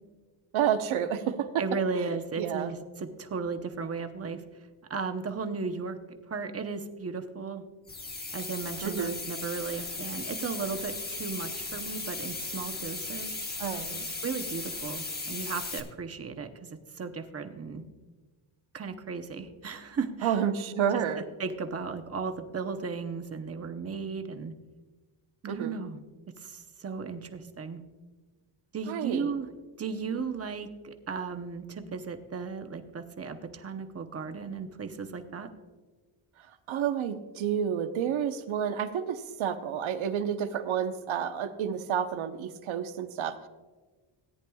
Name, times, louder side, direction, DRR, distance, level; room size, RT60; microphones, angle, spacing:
voice 1, 0.5-1.6 2.0-2.1 2.4-2.7 8.8-9.1 13.6-14.1 20.2-21.2 25.5-25.8 28.9-29.3 36.7-43.5, right 8 dB, 70° right, 8 dB, 1.0 m, -30 dB
voice 2, 1.6-4.4 4.9-6.0 6.3-7.6 8.3-13.4 14.2-17.8 18.7-20.3 21.1-24.5 25.4-26.0 26.4-27.8 28.7-29.5 29.8-35.5, right 5 dB, 30° right, 7 dB, 0.8 m, -35 dB
sound 1, 7.9-15.8, left 3 dB, 20° left, 0.9 m, -37 dB
17.5 x 10.0 x 2.3 m, 1.3 s
wide cardioid pair, 160°, 50 cm